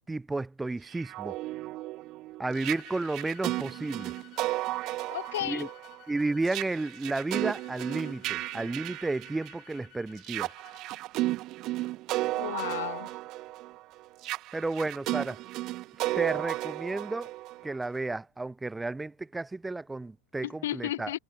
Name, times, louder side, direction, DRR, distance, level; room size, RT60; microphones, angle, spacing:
voice 1, 0.1-1.4 2.4-4.1 5.4-5.7 6.1-10.5 14.5-15.4 16.2-17.3 17.6-21.2, right 2 dB, 10° right, 0.6 m, -32 dB
sound 1, 0.9-9.7 10.2-18.0, right 17 dB, 45° right, 0.7 m, -34 dB
sound 2, 2.5-10.8, left 19 dB, 45° left, 5.8 m, -55 dB
voice 2, 5.1-5.7 12.3-13.1 20.4-21.2, left 14 dB, 70° left, 1.0 m, -33 dB
hypercardioid pair, 105°, 0 cm